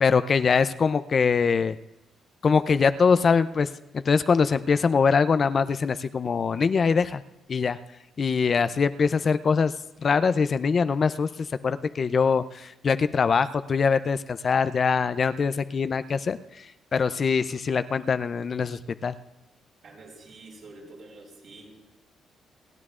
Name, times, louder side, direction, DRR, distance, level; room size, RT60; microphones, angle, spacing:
voice 1, 0.0-1.8 2.4-3.7 3.9-7.2 7.5-7.8 8.2-9.7 10.0-11.3 11.6-16.4 16.9-19.1, left 5 dB, 45° left, 12 dB, 0.5 m, -23 dB
voice 2, 19.8-21.7, right 2 dB, 60° right, -2 dB, 5.8 m, -47 dB
29.5 x 10.5 x 2.5 m, 0.91 s
cardioid pair, 90°, 0 cm